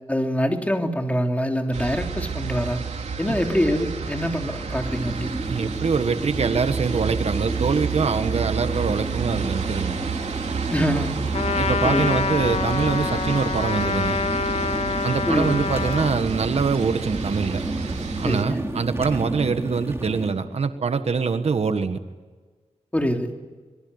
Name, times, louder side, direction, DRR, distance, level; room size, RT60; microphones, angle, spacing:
voice 1, 0.1-2.8 3.2-5.3 10.7-11.2 11.8-12.1 15.3-15.6 18.2-18.6 22.9-23.3, equal, 10° left, 3 dB, 3.3 m, -24 dB
sound 1, 1.7-18.4, right 5 dB, 85° right, 3.3 m, -30 dB
sound 2, 4.8-20.3, right 2 dB, 20° right, 3.4 m, -32 dB
voice 2, 5.5-10.0 11.5-14.2 15.0-17.6 18.2-22.0, right 5 dB, 65° right, 9 dB, 1.6 m, -24 dB
Trumpet, 11.3-16.2, left 5 dB, 65° left, 0.9 m, -26 dB
24.5 x 22.5 x 9.7 m, 1.4 s
wide cardioid pair, 80°, 11 cm